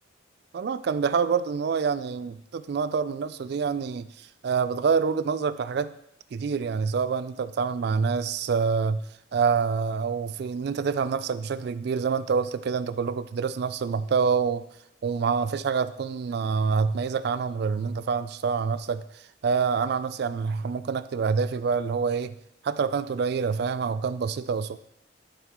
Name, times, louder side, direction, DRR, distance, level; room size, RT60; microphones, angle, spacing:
voice 1, 0.5-5.9 6.3-9.0 9.3-14.6 15.0-19.0 19.4-22.3 22.6-24.8, right 5 dB, 55° right, 14 dB, 0.3 m, -26 dB
11.5 x 4.6 x 3.6 m, 0.77 s
head